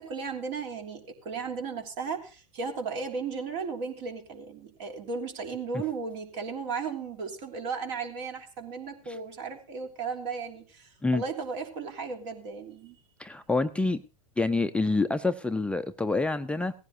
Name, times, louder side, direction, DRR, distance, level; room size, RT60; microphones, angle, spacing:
voice 1, 0.0-13.0, right 5 dB, 55° right, 3 dB, 3.3 m, -35 dB
voice 2, 13.2-14.0 14.4-16.7, left 3 dB, 5° left, 8 dB, 0.6 m, -27 dB
17.5 x 15.5 x 2.7 m, 0.33 s
hypercardioid pair, 95°, 19 cm